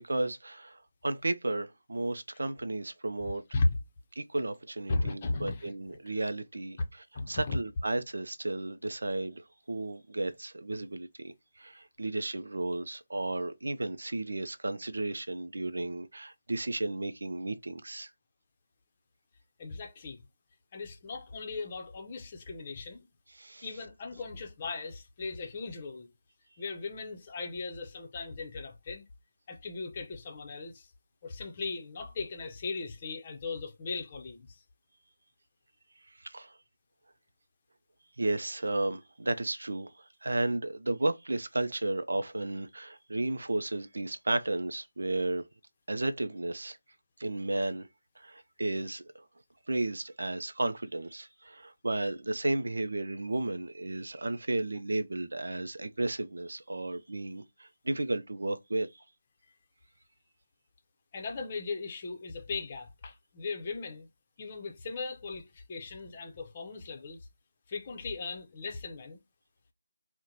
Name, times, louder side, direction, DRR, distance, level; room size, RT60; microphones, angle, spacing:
voice 1, 0.0-3.4 4.2-18.1 23.4-23.7 36.2-36.5 38.2-45.4 45.9-46.8 47.2-47.9 48.2-49.0 49.7-58.9, right 2 dB, 70° right, 0.4 m, -33 dB
voice 2, 4.9-5.7 7.1-7.6 19.6-20.2 20.7-23.1 23.6-26.1 26.6-29.0 29.5-30.9 31.2-34.5 61.1-64.1 64.4-67.2 67.7-69.2, left 3 dB, 30° left, 0.6 m, -37 dB
2.8 x 2.1 x 3.8 m
figure-of-eight pair, 165°, 0 cm